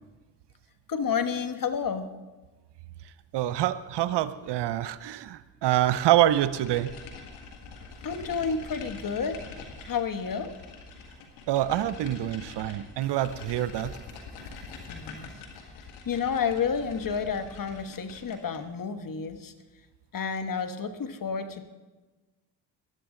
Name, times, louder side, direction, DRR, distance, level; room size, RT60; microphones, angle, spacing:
voice 1, 0.9-2.1 8.0-9.4 9.8-10.6 14.9-15.3 16.0-19.5 20.1-21.6, left 6 dB, 45° left, 8 dB, 1.4 m, -30 dB
voice 2, 3.3-6.9 11.5-13.9, right 13 dB, 60° right, 14 dB, 0.8 m, -26 dB
sound 1, 6.3-18.7, left 4 dB, 75° left, 2.0 m, -45 dB
19.5 x 12.5 x 3.9 m, 1.2 s
hypercardioid pair, 45°, 47 cm